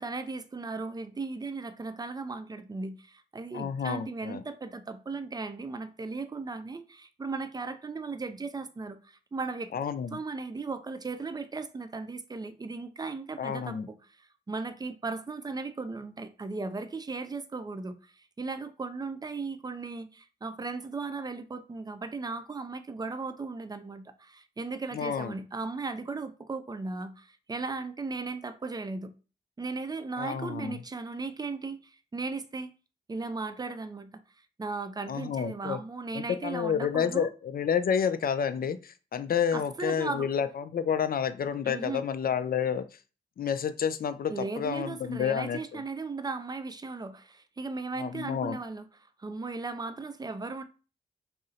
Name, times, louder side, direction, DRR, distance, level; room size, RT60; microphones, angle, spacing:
voice 1, 0.0-9.7 10.1-29.1 29.6-32.7 33.1-34.1 34.6-37.3 39.5-40.3 41.6-42.0 44.3-48.9 49.2-50.6, right 3 dB, 20° right, 0.4 m, -37 dB
voice 2, 3.5-4.4 9.7-10.2 13.4-13.9 24.9-25.4 30.2-30.8 35.1-35.8 36.1-42.8 43.4-45.8 48.0-48.6, left 7 dB, 50° left, 0.4 m, -30 dB
2.7 x 2.0 x 3.8 m
supercardioid pair, 50°, 20 cm